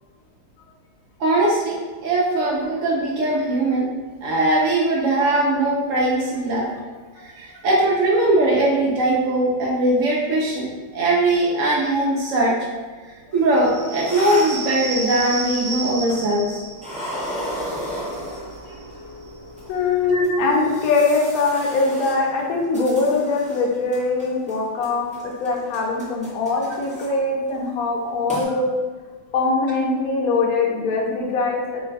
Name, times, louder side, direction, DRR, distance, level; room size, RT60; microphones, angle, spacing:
voice 1, 1.2-3.9 4.2-6.7 7.2-10.7 10.9-12.6 13.3-16.6 20.1-20.4, right 2 dB, 80° right, -3 dB, 0.7 m, -20 dB
sound 1, 13.4-15.3 16.0-16.5 16.8-18.9 19.6-19.7 20.2-23.6 23.9-24.5 24.8-27.1 27.5-27.7 28.0-28.1 28.3-28.4, equal, 10° right, 0.4 m, -34 dB
sound 2, 13.6-20.8, right 2 dB, 45° right, 0.6 m, -34 dB
voice 2, 19.7-28.7 29.3-31.8, left 3 dB, 65° left, -1 dB, 0.9 m, -22 dB
3.1 x 2.2 x 3.9 m, 1.4 s
omnidirectional pair, 2.0 m